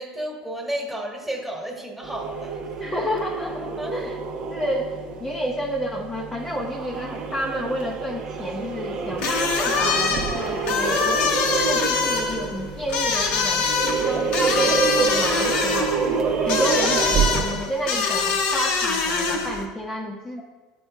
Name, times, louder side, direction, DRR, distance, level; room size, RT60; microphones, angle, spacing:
voice 1, 0.0-2.9 3.8-4.1, right 1 dB, 10° right, -1 dB, 1.4 m, -32 dB
sound 1, 2.0-17.7, right 5 dB, 50° right, 0.7 m, -27 dB
voice 2, 2.8-4.2 4.5-16.0 16.4-20.4, equal, 15° left, -3 dB, 0.6 m, -30 dB
sound 2, 9.2-19.7, left 5 dB, 60° left, 0.9 m, -24 dB
10.0 x 4.4 x 2.3 m, 1.3 s
supercardioid pair, 105°, 2 cm